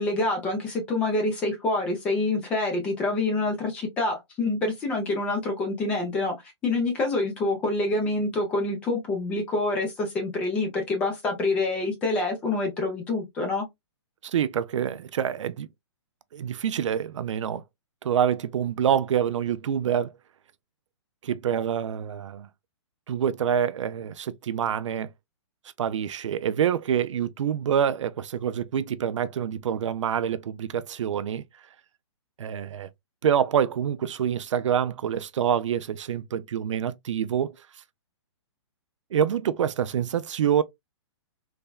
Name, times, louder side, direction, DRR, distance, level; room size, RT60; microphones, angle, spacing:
voice 1, 0.0-13.7, left 2 dB, 10° left, 0.4 m, -26 dB
voice 2, 14.2-15.7 16.3-17.6 18.0-20.1 21.2-22.5 23.1-25.1 25.8-31.4 32.4-32.9 33.2-37.5 39.1-40.6, right 8 dB, 85° right, 0.4 m, -26 dB
3.3 x 2.1 x 2.2 m
hypercardioid pair, 170°, 15 cm